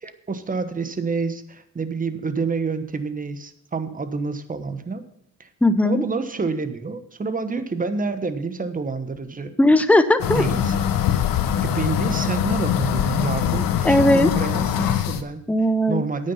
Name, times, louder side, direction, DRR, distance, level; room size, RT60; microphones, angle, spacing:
voice 1, 0.0-5.0 5.4-5.5 5.8-9.5 10.3-10.7 11.6-15.4 15.9-16.3, right 4 dB, 25° right, 10 dB, 1.2 m, -28 dB
voice 2, 5.6-6.0 9.6-10.4 13.8-14.3 15.5-16.0, left 1 dB, 5° left, 11 dB, 0.7 m, -17 dB
sound 1, 10.2-15.2, left 9 dB, 70° left, 1.1 m, -22 dB
9.7 x 8.7 x 5.5 m, 0.74 s
cardioid pair, 110°, 34 cm